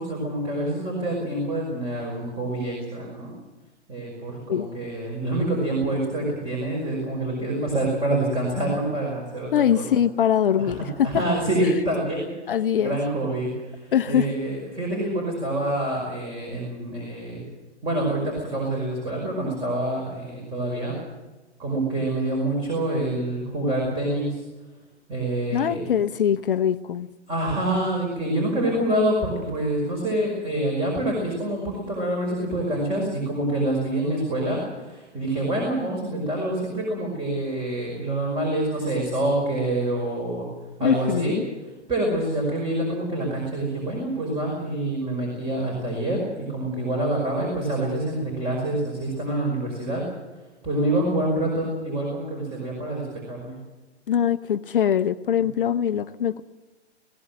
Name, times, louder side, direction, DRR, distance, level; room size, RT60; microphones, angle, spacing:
voice 1, 0.0-3.3 3.9-9.6 10.6-12.5 12.8-17.5 17.8-20.9 21.6-24.4 25.1-25.9 27.3-40.5 40.8-41.4 41.9-50.0 50.6-53.6, right 1 dB, 15° right, 0 dB, 5.4 m, -26 dB
voice 2, 9.5-11.2 12.5-13.0 13.9-14.3 25.5-27.1 40.8-41.5 54.1-56.4, left 9 dB, 50° left, 11 dB, 0.8 m, -22 dB
21.0 x 17.0 x 7.6 m, 1.2 s
figure-of-eight pair, 125°, 34 cm